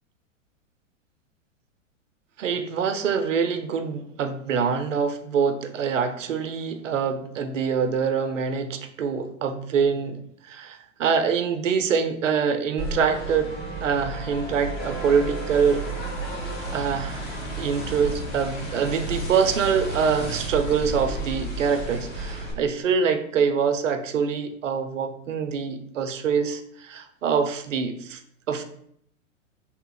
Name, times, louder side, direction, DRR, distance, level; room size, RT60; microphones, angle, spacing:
voice 1, 2.4-10.2 10.5-13.5 13.8-15.8 16.7-17.3 17.6-28.2 28.5-28.6, right 6 dB, 75° right, 9 dB, 0.6 m, -25 dB
sound 1, 12.8-22.5, right 2 dB, 25° left, 1.3 m, -32 dB
3.4 x 3.2 x 3.2 m, 0.67 s
figure-of-eight pair, 105°, 38 cm